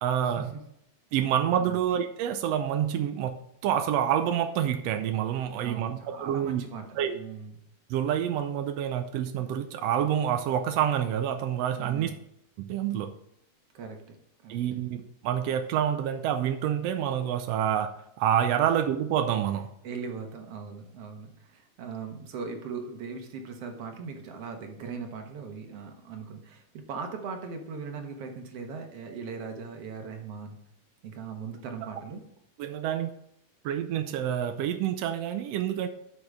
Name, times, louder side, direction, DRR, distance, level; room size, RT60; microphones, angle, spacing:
voice 1, 0.0-0.5 1.1-6.6 7.0-7.2 7.9-12.1 12.6-13.1 14.5-19.7 32.6-33.1 33.6-35.9, right 9 dB, 80° right, 7 dB, 1.5 m, -27 dB
voice 2, 5.6-7.6 11.7-12.2 13.7-14.2 14.4-14.6 19.8-30.6 31.0-32.2, right 5 dB, 60° right, 4 dB, 2.1 m, -39 dB
11.5 x 6.2 x 3.6 m, 0.77 s
omnidirectional pair, 3.5 m